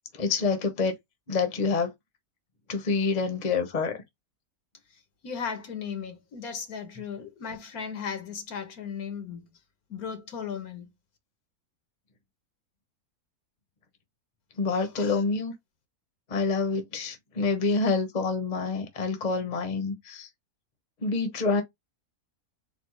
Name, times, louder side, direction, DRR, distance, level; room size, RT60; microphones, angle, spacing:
voice 1, 0.1-0.9 1.3-1.9 2.7-4.0 14.6-15.5 16.3-20.3 21.0-21.6, left 4 dB, 35° left, 1.0 m, -27 dB
voice 2, 5.2-9.5 9.9-10.9 14.8-15.2, left 6 dB, 75° left, 1.6 m, -36 dB
4.2 x 2.4 x 4.6 m
omnidirectional pair, 1.6 m